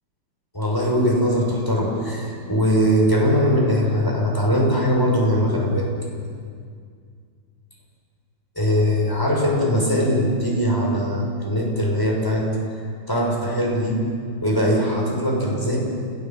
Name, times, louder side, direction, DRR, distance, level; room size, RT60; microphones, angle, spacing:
voice 1, 0.5-5.9 8.6-12.5 13.1-14.0 14.4-15.8, equal, 10° left, -2 dB, 6.1 m, -21 dB
29.5 x 17.5 x 7.6 m, 2.2 s
omnidirectional pair, 2.4 m